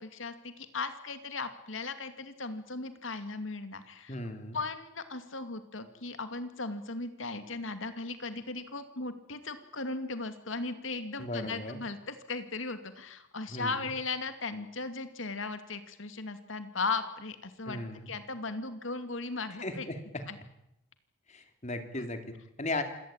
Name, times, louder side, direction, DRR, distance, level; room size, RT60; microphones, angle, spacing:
voice 1, 0.0-4.2 4.5-17.8 18.1-19.9 20.3-20.4, left 3 dB, 75° left, 10 dB, 2.4 m, -37 dB
voice 2, 4.1-4.6 11.2-11.8 13.5-13.8 17.6-18.1 19.6-20.2 21.3-22.8, left 2 dB, 35° left, 7 dB, 2.8 m, -37 dB
27.0 x 18.0 x 8.9 m, 0.83 s
head